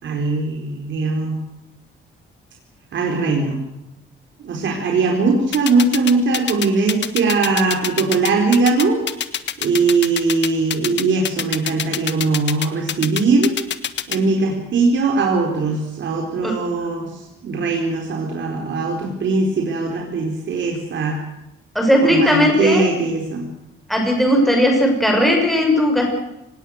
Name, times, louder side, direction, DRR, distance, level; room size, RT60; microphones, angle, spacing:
voice 1, 0.0-1.4 2.9-3.6 4.4-9.0 9.6-13.5 14.1-21.2 22.0-23.5, right 3 dB, 65° right, 2 dB, 4.4 m, -20 dB
sound 1, 5.5-14.2, left 9 dB, 60° left, 1.5 m, -24 dB
voice 2, 21.7-22.9 23.9-26.1, left 1 dB, ahead, 2 dB, 6.2 m, -17 dB
25.0 x 20.0 x 6.5 m, 0.88 s
cardioid pair, 135°, 21 cm